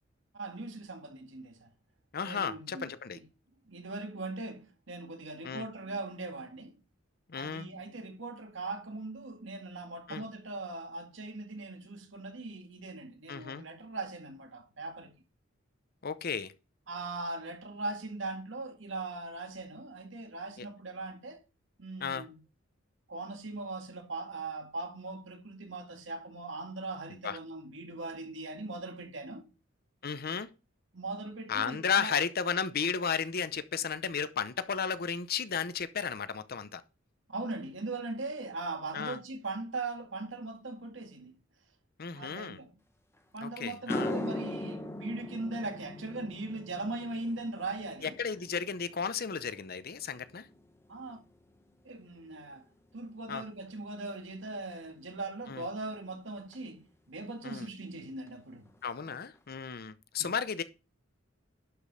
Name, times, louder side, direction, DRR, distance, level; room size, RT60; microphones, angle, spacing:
voice 1, 0.3-1.7 2.2-2.8 3.1-3.2 3.7-6.7 7.3-15.1 16.9-21.4 21.8-22.4 23.1-29.5 30.9-32.1 37.3-41.3 42.1-42.7 43.3-48.1 50.9-51.2 51.9-52.6 52.9-58.7 60.2-60.3, right 2 dB, 70° right, 2.0 m, -40 dB
voice 2, 2.1-3.2 5.4-5.7 7.3-7.7 10.1-10.2 13.3-13.6 16.0-16.5 20.6-20.7 22.0-22.3 27.2-27.4 30.0-30.5 31.5-36.8 38.9-39.2 42.0-42.6 43.4-44.1 48.0-50.5 53.3-53.4 55.5-55.7 57.4-57.7 58.8-60.6, left 6 dB, 50° left, 0.7 m, -34 dB
sound 1, 43.2-43.3 43.7-52.2 52.5-52.9 56.5-56.6 58.3-58.4 58.7-58.8 59.1-59.6, left 1 dB, 15° left, 1.2 m, -41 dB
11.5 x 5.1 x 5.5 m
head